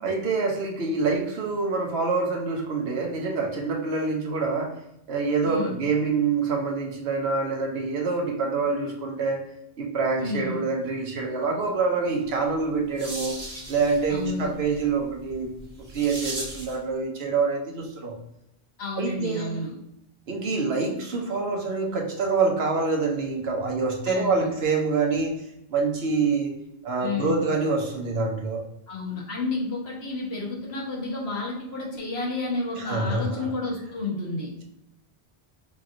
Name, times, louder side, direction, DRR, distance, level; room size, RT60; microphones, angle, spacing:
voice 1, 0.0-4.8 5.1-9.5 9.8-13.4 13.7-15.5 15.9-18.2 19.0-19.6 20.3-25.4 25.7-28.6 32.8-33.5, right 4 dB, 80° right, 1 dB, 1.1 m, -26 dB
voice 2, 5.4-5.8 10.2-10.6 14.1-14.5 18.8-19.7 24.0-24.5 27.0-27.5 28.9-34.5, left 3 dB, 75° left, -2 dB, 1.4 m, -31 dB
sound 1, 12.4-16.8, right 2 dB, 40° right, 1.0 m, -38 dB
5.0 x 3.0 x 2.5 m, 0.81 s
omnidirectional pair, 1.1 m